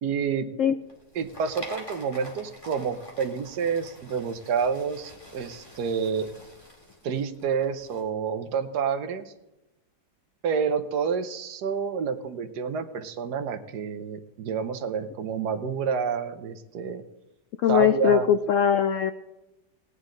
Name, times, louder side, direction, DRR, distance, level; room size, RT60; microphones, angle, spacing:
voice 1, 0.0-0.5 1.1-6.3 7.0-9.3 10.4-17.0 17.7-18.3, right 6 dB, 70° right, 8 dB, 1.4 m, -29 dB
sound 1, 0.8-8.0, left 1 dB, 20° left, 2.2 m, -46 dB
voice 2, 17.6-19.1, left 9 dB, 80° left, 10 dB, 0.7 m, -21 dB
17.5 x 9.5 x 3.8 m, 0.99 s
omnidirectional pair, 1.9 m